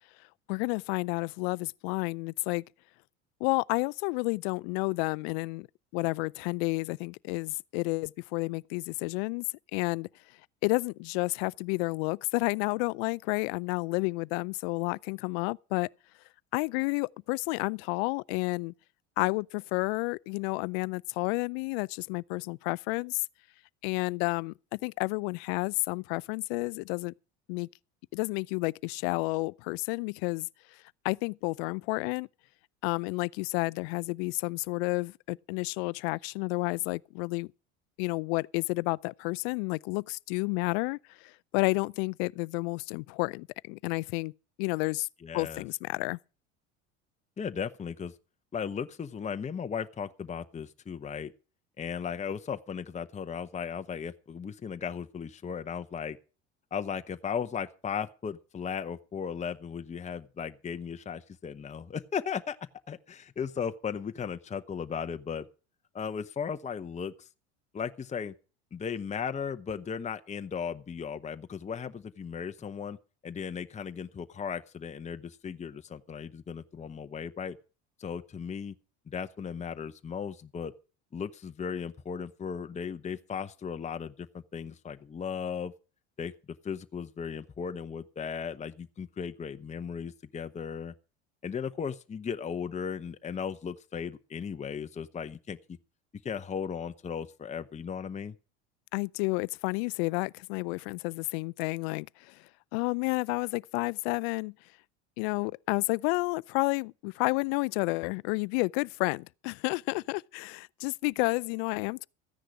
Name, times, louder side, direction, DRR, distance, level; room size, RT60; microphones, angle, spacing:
voice 1, 0.5-2.6 3.4-5.7 5.9-9.4 9.7-10.1 10.6-15.9 16.5-18.7 19.2-23.2 23.8-27.1 27.5-27.7 28.1-30.5 31.0-32.3 32.8-37.5 38.0-44.3 44.6-45.1 45.3-46.2 98.9-104.5 105.2-112.1, left 28 dB, 70° left, 0.5 m, -31 dB
voice 2, 45.2-45.6 47.4-48.1 48.5-51.3 51.8-56.2 56.7-62.6 62.9-65.5 65.9-67.3 67.7-68.3 68.7-73.0 73.2-77.6 78.0-78.7 79.1-80.7 81.1-85.7 86.2-86.3 86.6-90.9 91.4-95.8 96.2-98.4, left 7 dB, 20° left, 0.9 m, -36 dB
14.5 x 10.0 x 5.0 m
hypercardioid pair, 80°, 33 cm